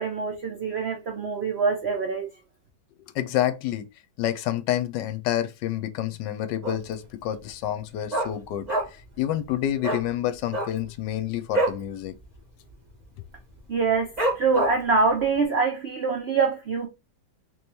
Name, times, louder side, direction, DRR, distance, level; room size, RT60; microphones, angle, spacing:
voice 1, 0.0-2.3 13.7-16.9, right 4 dB, 65° right, 0.6 m, -25 dB
voice 2, 3.0-3.9 4.2-12.1, left 12 dB, 75° left, 1.2 m, -28 dB
Dog, 6.6-7.0 7.3-7.4 7.7-9.1 9.4-9.5 9.8-10.0 10.4-11.8 12.2-12.4 12.6-13.0 13.5-13.6 14.2-15.0 15.4-15.5, right 1 dB, 30° right, 0.8 m, -27 dB
3.3 x 3.1 x 2.6 m
omnidirectional pair, 2.0 m